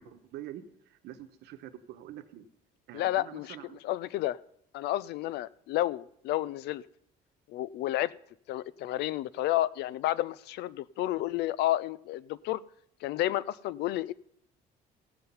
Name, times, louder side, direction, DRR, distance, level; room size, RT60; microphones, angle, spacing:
voice 1, 0.0-2.5 2.9-3.8, right 11 dB, 80° right, 9 dB, 1.1 m, -46 dB
voice 2, 2.9-3.5 3.8-4.4 4.7-6.8 7.5-8.1 8.5-12.6 13.0-14.1, left 14 dB, 80° left, 20 dB, 0.5 m, -31 dB
16.0 x 7.7 x 5.6 m, 0.71 s
cardioid pair, 110°, 17 cm